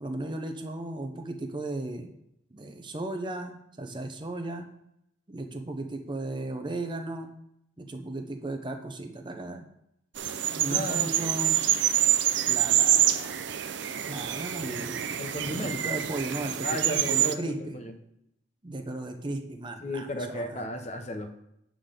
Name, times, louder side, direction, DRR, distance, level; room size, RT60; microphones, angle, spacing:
voice 1, 0.0-2.1 2.5-4.7 5.3-7.3 7.8-9.6 10.5-11.6 12.4-13.4 14.0-17.8 18.6-20.7, right 2 dB, 25° right, 5 dB, 0.7 m, -36 dB
sound 1, 10.2-17.3, right 11 dB, 80° right, 0.5 m, -26 dB
voice 2, 10.7-11.3 15.2-16.0 16.6-18.0 19.8-21.3, equal, 35° left, 6 dB, 0.7 m, -35 dB
8.5 x 3.8 x 6.5 m, 0.79 s
head